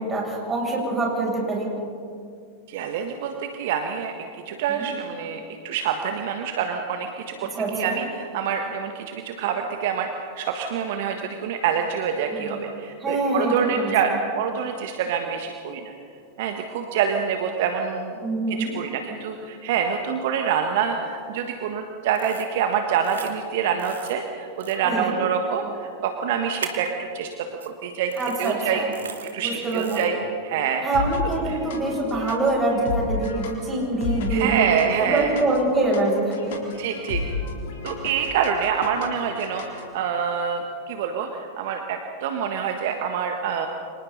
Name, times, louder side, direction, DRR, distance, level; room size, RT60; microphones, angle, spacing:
voice 1, 0.0-1.7 4.7-4.9 7.6-8.0 12.3-12.6 13.0-14.2 18.2-18.7 24.8-25.1 28.2-28.9 29.4-30.1 30.8-34.7 35.0-36.6, right 2 dB, 15° right, -3 dB, 7.5 m, -25 dB
voice 2, 2.7-4.1 4.5-10.1 10.3-15.9 16.4-18.1 18.5-27.5 27.8-28.1 28.4-28.8 29.2-30.2 30.4-30.8 31.5-31.6 34.3-35.3 36.8-37.2 37.8-43.7, right 7 dB, 50° right, 4 dB, 1.5 m, -26 dB
sound 1, 22.2-22.5 23.0-23.3 23.8-24.1 24.6-24.8 26.6-26.9 27.6-27.7 28.1-28.5 28.9-29.3 29.7-30.1, right 7 dB, 70° right, 1.9 m, -37 dB
sound 2, 30.9-39.9, left 4 dB, 55° left, 3.7 m, -33 dB
30.0 x 25.5 x 4.1 m, 2.4 s
figure-of-eight pair, 90°, 0 cm